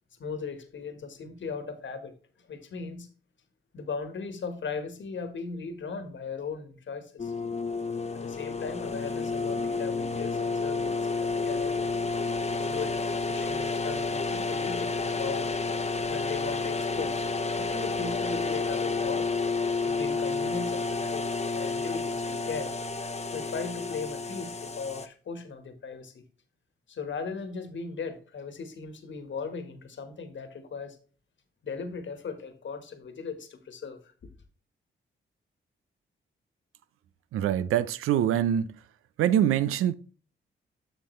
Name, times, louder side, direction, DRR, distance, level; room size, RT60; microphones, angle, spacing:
voice 1, 0.2-2.1 2.5-3.1 3.7-7.3 8.1-11.9 12.6-13.0 13.3-15.5 16.1-17.3 17.6-19.3 19.8-22.7 23.3-26.2 26.9-31.0 31.6-34.0, left 5 dB, 65° left, 1.4 m, -38 dB
sound 1, 7.2-25.1, left 4 dB, 30° left, 0.8 m, -30 dB
voice 2, 37.3-38.8 39.2-39.9, right 10 dB, 90° right, 0.6 m, -24 dB
7.9 x 6.0 x 3.2 m
supercardioid pair, 55°, 21 cm